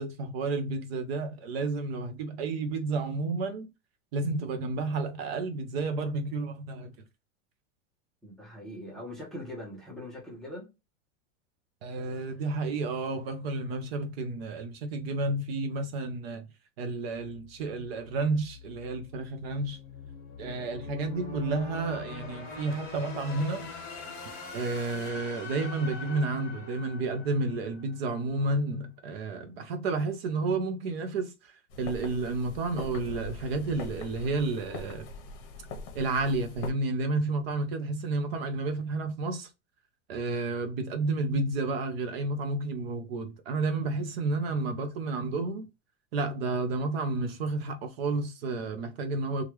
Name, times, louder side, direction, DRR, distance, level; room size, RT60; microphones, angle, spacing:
voice 1, 0.0-3.7 4.1-6.9 11.8-16.5 16.8-19.8 20.4-23.7 24.5-35.1 35.9-39.5 40.1-45.6 46.1-49.4, right 3 dB, 50° right, 0.6 m, -31 dB
voice 2, 8.2-10.7, left 1 dB, ahead, 0.6 m, -41 dB
sound 1, 17.2-28.2, left 4 dB, 25° left, 1.1 m, -43 dB
sound 2, 31.7-36.7, left 3 dB, 45° left, 0.9 m, -42 dB
3.1 x 2.4 x 3.0 m
supercardioid pair, 165°, 40 cm